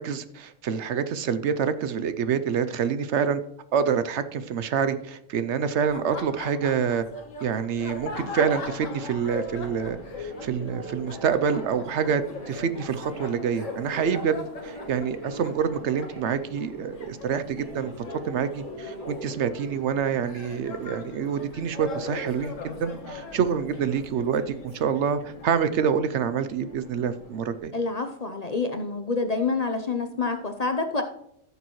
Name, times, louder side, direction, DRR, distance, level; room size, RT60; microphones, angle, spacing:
voice 1, 0.0-3.4 3.7-7.0 7.4-14.4 14.6-17.9 18.2-27.7, right 7 dB, 70° right, 12 dB, 0.9 m, -27 dB
Laughter, 5.8-25.7, left 3 dB, 85° left, 1.6 m, -41 dB
Subway metro underground, 8.2-27.6, equal, 30° right, 2.4 m, -43 dB
voice 2, 27.7-31.0, left 3 dB, 40° left, 6 dB, 0.6 m, -27 dB
15.0 x 6.8 x 3.1 m, 0.75 s
omnidirectional pair, 1.3 m